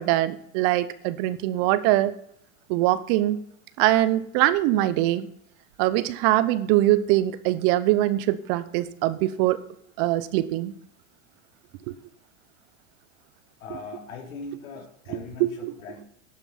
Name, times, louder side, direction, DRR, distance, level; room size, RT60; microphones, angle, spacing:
voice 1, 0.0-2.2 2.7-3.4 3.8-5.3 5.8-9.6 10.0-10.7 11.9-12.0 15.1-15.7, right 15 dB, 45° right, 16 dB, 0.8 m, -23 dB
voice 2, 13.6-16.0, left 4 dB, 80° left, 2 dB, 3.6 m, -40 dB
11.5 x 7.4 x 5.8 m, 0.72 s
supercardioid pair, 130°, 40 cm